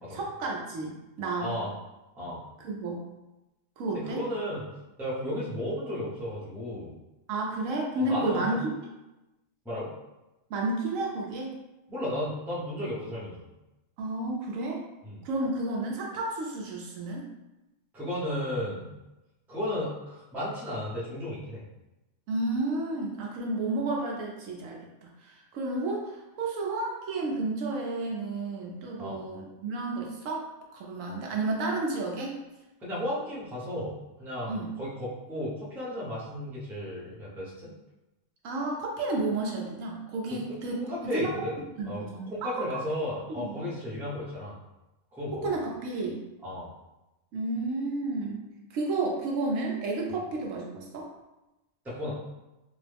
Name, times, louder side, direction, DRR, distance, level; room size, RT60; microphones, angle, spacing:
voice 1, 0.1-1.5 2.6-3.0 3.8-4.2 7.3-8.7 10.5-11.6 14.0-14.8 15.2-17.3 22.3-30.5 30.7-32.4 34.5-34.7 38.4-41.3 41.8-42.7 43.3-43.6 45.4-46.2 47.3-48.4 48.7-51.1, right 2 dB, 75° right, -1 dB, 1.0 m, -31 dB
voice 2, 1.4-1.7 2.2-2.4 3.9-4.6 5.0-6.9 7.9-8.6 9.6-9.9 11.9-13.4 15.0-15.2 17.9-18.9 19.5-21.6 29.0-29.2 32.8-37.7 40.3-41.6 41.8-42.0 42.3-44.5 45.1-45.5 46.4-46.7 51.8-52.1, left 1 dB, ahead, -8 dB, 0.6 m, -34 dB
3.7 x 2.1 x 3.3 m, 0.99 s
omnidirectional pair, 1.4 m